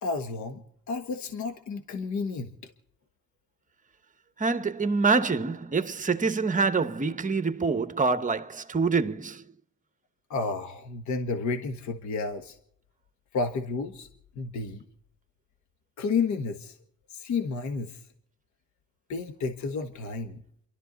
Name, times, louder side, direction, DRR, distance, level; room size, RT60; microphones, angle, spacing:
voice 1, 0.0-2.5 10.3-12.6 13.3-14.1 14.3-14.8 16.0-16.8 17.1-18.0 19.1-20.4, left 4 dB, 70° left, 1.5 m, -31 dB
voice 2, 4.4-9.4, right 4 dB, 25° right, 1.1 m, -26 dB
29.0 x 12.5 x 4.0 m
cardioid pair, 90°, 30 cm